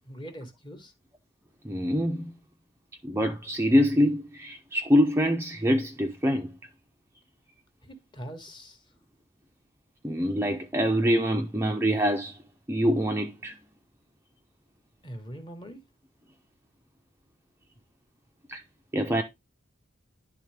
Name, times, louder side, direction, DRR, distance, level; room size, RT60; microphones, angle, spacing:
voice 1, 0.0-0.9 7.8-8.8 15.0-15.8, equal, 20° left, 1.1 m, -42 dB
voice 2, 1.6-2.3 3.0-6.5 10.0-12.4 12.7-13.6 18.5-18.6 18.9-19.2, equal, 10° right, 0.4 m, -25 dB
10.5 x 3.5 x 3.3 m
head